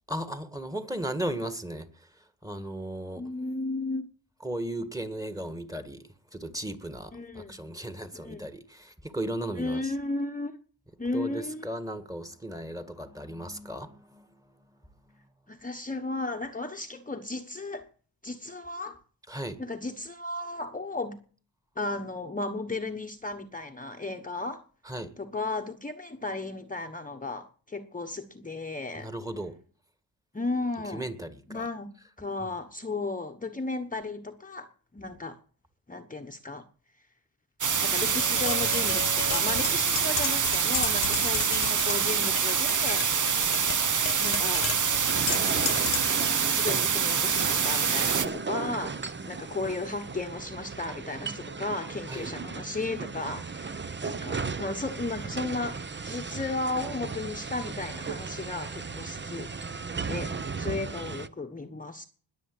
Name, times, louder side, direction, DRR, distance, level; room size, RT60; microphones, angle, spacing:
voice 1, 0.1-3.3 4.4-9.9 11.1-14.5 15.1-15.2 19.3-19.6 24.8-25.1 28.9-29.6 30.8-31.7 32.4-32.5 46.7-46.9 52.1-52.3, right 1 dB, 10° right, 1.9 m, -36 dB
voice 2, 3.2-4.1 7.1-7.6 8.1-8.4 9.6-10.5 11.0-11.7 15.5-17.9 18.2-19.0 19.6-21.2 21.8-24.6 25.2-29.1 30.3-31.0 31.5-31.9 32.2-34.7 34.9-35.4 35.9-36.6 37.8-43.3 44.2-44.7 45.3-45.9 46.2-59.5 60.1-60.3 60.6-62.0, left 2 dB, 20° left, 1.2 m, -34 dB
sound 1, 37.6-48.3, right 6 dB, 45° right, 1.2 m, -26 dB
Tap, 38.0-46.2, left 11 dB, 60° left, 0.7 m, -35 dB
sound 2, 45.1-61.3, right 4 dB, 25° right, 0.9 m, -36 dB
21.0 x 7.8 x 7.9 m
wide cardioid pair, 125°, 44 cm